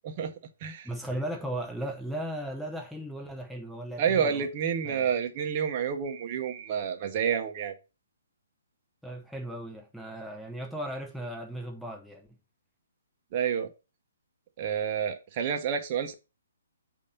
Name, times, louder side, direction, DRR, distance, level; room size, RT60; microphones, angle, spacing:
voice 1, 0.8-4.5 4.8-5.1 9.0-12.3, right 1 dB, ahead, 0.8 m, -36 dB
voice 2, 4.0-7.8 13.3-13.7 14.6-16.1, right 7 dB, 35° right, 0.9 m, -29 dB
8.3 x 2.8 x 5.4 m
figure-of-eight pair, 130°, 0 cm